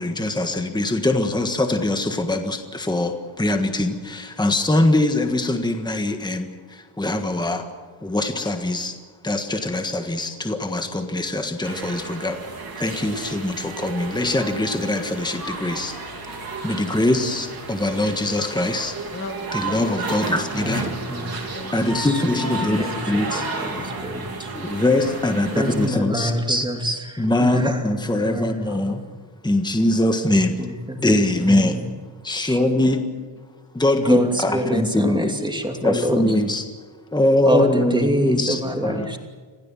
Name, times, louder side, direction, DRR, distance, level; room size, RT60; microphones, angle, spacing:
voice 1, 0.0-7.6 8.0-9.0 9.2-12.4 12.8-15.9 16.6-19.0 19.5-20.9 21.7-23.6 24.5-26.3 27.2-29.0 29.4-30.7 31.0-31.8 32.2-33.0 33.7-35.3 35.8-36.6 37.1-39.0, left 1 dB, 10° left, 6 dB, 1.5 m, -22 dB
sound 1, 11.6-25.9, right 3 dB, 45° right, 3.5 m, -33 dB
voice 2, 19.1-20.0 21.1-22.0 23.1-23.3 24.7-25.9 29.5-29.7 32.8-33.1 34.3-36.0 38.3-39.2, left 3 dB, 25° left, 6 dB, 1.5 m, -40 dB
voice 3, 20.5-21.3 21.7-22.0 22.3-22.4 22.8-24.5 25.5-28.6 28.9-29.0 30.3-31.8 32.4-32.6 34.1-36.2 37.5-39.2, equal, 10° right, 3 dB, 2.7 m, -26 dB
27.0 x 17.0 x 7.5 m, 1.5 s
wide cardioid pair, 150°, 49 cm